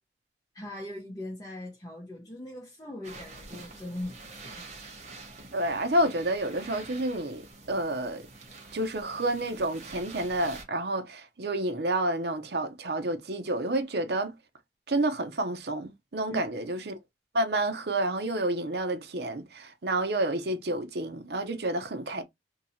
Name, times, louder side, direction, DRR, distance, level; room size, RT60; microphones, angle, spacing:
voice 1, 0.5-4.6 16.3-16.4, left 1 dB, 20° left, 0.9 m, -40 dB
sound 1, 3.0-10.6, right 3 dB, 40° right, 1.0 m, -47 dB
voice 2, 5.5-7.4 7.7-8.2 8.7-14.3 14.9-17.0 17.3-22.2, right 1 dB, 65° right, 0.7 m, -29 dB
2.9 x 2.8 x 4.0 m
head